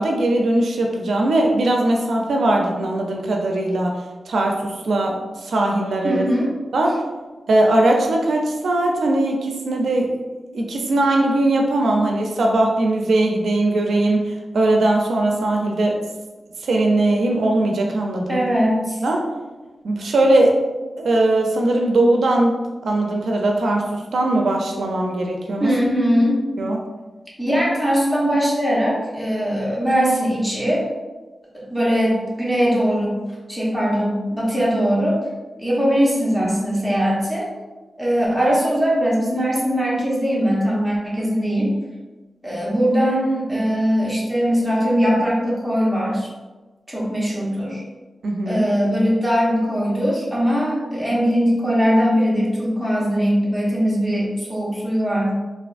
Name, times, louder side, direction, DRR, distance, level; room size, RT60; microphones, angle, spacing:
voice 1, 0.0-3.9 4.3-6.3 6.7-7.0 7.5-10.2 10.5-16.0 16.6-18.5 19.0-19.3 19.8-20.6 21.0-25.7 26.6-26.8 48.2-48.7, right 2 dB, 85° right, 1 dB, 0.4 m, -20 dB
voice 2, 6.0-6.5 18.3-19.0 25.6-26.4 27.4-30.8 31.5-33.2 33.5-35.2 35.6-37.5 38.0-41.7 42.4-46.3 46.9-47.8 48.5-55.3, equal, 5° right, -6 dB, 0.8 m, -20 dB
3.3 x 2.4 x 2.4 m, 1.2 s
wide cardioid pair, 145°, 0 cm